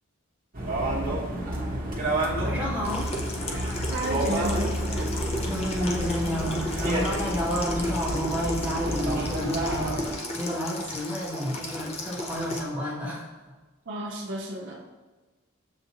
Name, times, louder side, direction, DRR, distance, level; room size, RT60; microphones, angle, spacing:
sound 1, 0.5-10.1, right 1 dB, 45° right, 0.9 m, -29 dB
voice 1, 2.4-3.1 5.4-13.5, equal, 10° right, -5 dB, 1.0 m, -30 dB
Water tap faucet / Sink (filling or washing), 2.8-12.6, left 1 dB, 30° left, 0.5 m, -34 dB
voice 2, 3.9-5.1 13.9-14.9, right 1 dB, 60° right, 0 dB, 0.5 m, -33 dB
7.1 x 2.4 x 2.9 m, 1.3 s
head